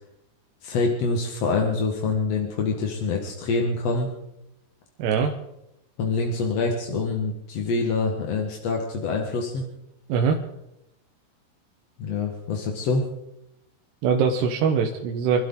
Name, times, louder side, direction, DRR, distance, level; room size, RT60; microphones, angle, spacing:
voice 1, 0.6-4.1 6.0-9.7 12.0-13.1, left 3 dB, 55° left, 2 dB, 1.9 m, -25 dB
voice 2, 5.0-5.3 10.1-10.4 14.0-15.5, right 6 dB, 80° right, 2 dB, 3.1 m, -22 dB
27.5 x 12.5 x 3.9 m, 0.87 s
omnidirectional pair, 4.9 m